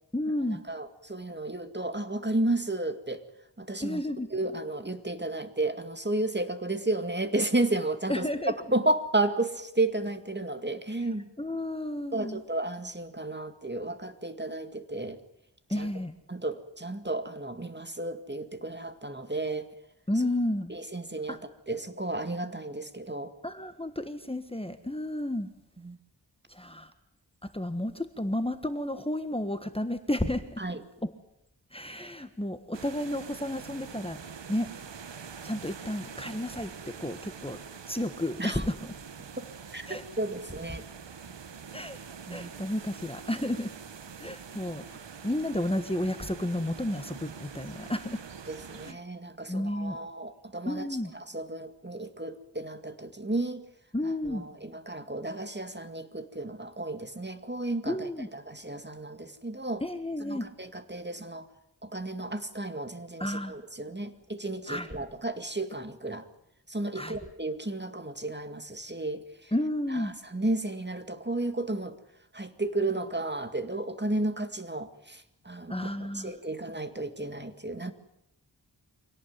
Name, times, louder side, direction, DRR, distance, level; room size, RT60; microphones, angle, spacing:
voice 1, 0.1-0.6 3.8-4.3 8.1-8.5 11.4-12.4 15.7-16.1 20.1-20.7 21.3-21.4 23.4-25.5 26.5-26.9 27.5-30.6 31.0-31.1 31.7-34.2 34.5-34.7 35.4-37.6 37.9-38.9 39.9-40.0 41.7-42.0 42.3-43.7 44.2-48.2 48.8-49.0 49.5-50.0 50.6-51.1 53.9-54.4 57.9-58.3 59.8-60.5 63.2-63.5 64.7-64.9 66.9-67.2 69.5-70.1 75.7-76.3, left 1 dB, 15° left, 9 dB, 1.5 m, -32 dB
voice 2, 0.7-3.2 3.6-4.0 4.3-8.3 8.7-11.3 12.1-15.2 15.8-15.9 16.3-19.7 20.7-21.4 21.7-23.3 25.8-26.0 30.6-30.8 38.4-38.6 39.4-39.5 39.7-40.8 42.3-42.5 48.5-50.9 51.1-53.6 54.0-59.8 60.2-61.5 61.8-66.3 66.7-69.5 69.9-71.9 72.3-77.9, right 2 dB, 25° right, 8 dB, 2.2 m, -33 dB
sound 1, 32.7-48.9, right 6 dB, 85° right, 1.1 m, -45 dB
25.0 x 18.0 x 9.6 m, 0.80 s
wide cardioid pair, 65°, 42 cm